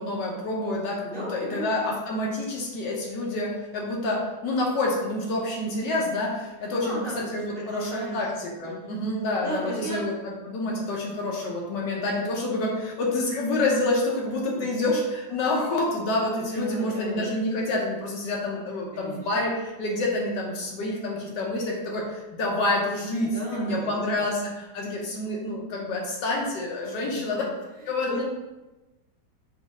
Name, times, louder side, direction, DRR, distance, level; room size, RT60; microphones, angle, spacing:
voice 1, 0.0-10.1 10.4-27.5 27.9-28.2, left 2 dB, 75° left, -1 dB, 1.5 m, -28 dB
voice 2, 1.0-1.7 6.8-8.3 8.6-9.0 9.4-10.1 14.5-14.8 16.4-17.3 18.9-19.5 23.2-24.0 27.0-28.2, equal, 35° right, -8 dB, 1.6 m, -37 dB
5.1 x 2.8 x 3.6 m, 1.1 s
omnidirectional pair, 1.9 m